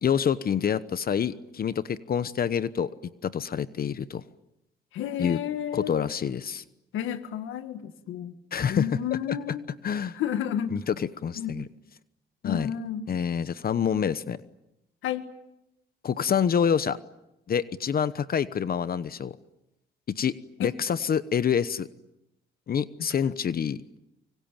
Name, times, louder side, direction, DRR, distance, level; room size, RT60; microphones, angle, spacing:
voice 1, 0.0-2.9 3.2-4.2 5.2-5.4 5.7-6.6 8.5-9.4 9.8-10.2 10.7-11.7 12.4-12.7 13.1-14.4 16.0-17.0 17.5-19.4 20.1-20.3 20.6-21.9 22.7-23.8, left 7 dB, 50° left, 14 dB, 1.0 m, -27 dB
voice 2, 4.9-6.0 6.9-8.3 8.7-9.6 10.1-10.8 11.4-11.5 12.4-13.0 15.0-15.2 20.6-20.7, left 9 dB, 85° left, 10 dB, 1.8 m, -31 dB
25.0 x 24.0 x 9.1 m, 0.89 s
cardioid pair, 90°, 20 cm